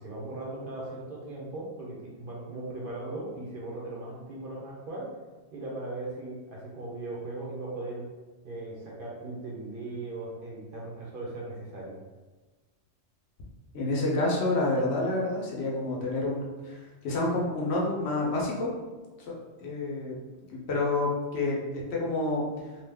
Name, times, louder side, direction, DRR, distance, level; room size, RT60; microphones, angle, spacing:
voice 1, 0.0-5.1 5.5-8.0 8.4-11.9, right 2 dB, 55° right, -4 dB, 0.9 m, -38 dB
voice 2, 13.7-18.7 19.2-19.3 19.6-20.1 20.5-22.4, left 2 dB, 75° left, -3 dB, 1.0 m, -28 dB
2.8 x 2.3 x 3.4 m, 1.2 s
omnidirectional pair, 1.1 m